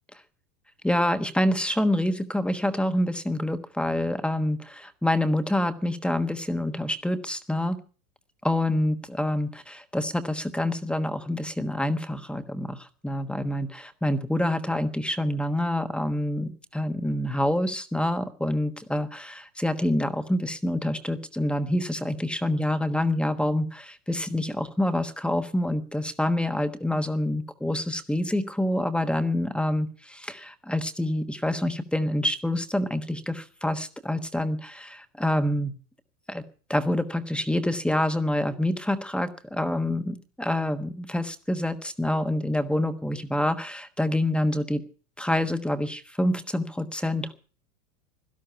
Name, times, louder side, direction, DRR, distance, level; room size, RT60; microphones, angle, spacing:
voice 1, 0.8-7.8 8.4-35.7 36.3-36.4 36.7-44.8 45.2-47.4, left 1 dB, ahead, 8 dB, 1.2 m, -27 dB
17.0 x 12.0 x 5.7 m, 0.39 s
supercardioid pair, 135°, 44 cm